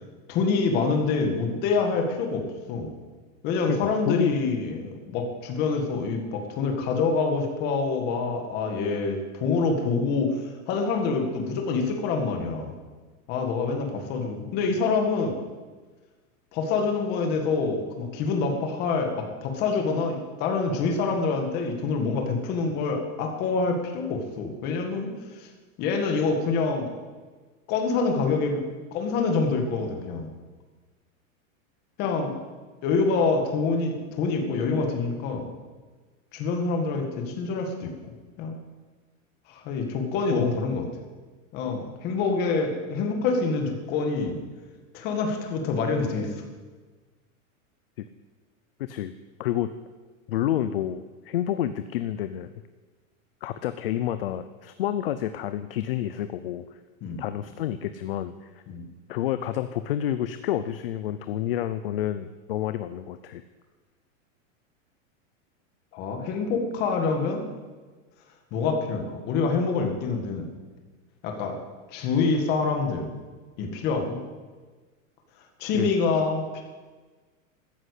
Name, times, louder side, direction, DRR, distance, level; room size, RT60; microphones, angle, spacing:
voice 1, 0.3-2.9 3.4-12.7 13.3-15.4 16.5-25.5 25.8-26.9 27.7-28.6 28.9-30.3 32.0-32.3 32.8-35.5 36.3-37.9 38.4-38.6 39.5-40.8 41.5-44.4 44.9-46.3 57.0-57.2 58.7-58.8 65.9-67.4 68.5-70.5 71.2-71.6 71.9-73.1 73.6-74.2 75.6-76.6, left 4 dB, 25° left, 4 dB, 1.8 m, -26 dB
voice 2, 3.7-4.4 40.3-40.6 48.0-48.1 48.9-49.1 49.4-49.7 50.3-52.5 53.4-56.6 57.2-58.6 59.1-63.4 75.7-75.9, left 11 dB, 45° left, 11 dB, 0.6 m, -29 dB
13.5 x 9.8 x 8.3 m, 1.4 s
supercardioid pair, 180°, 41 cm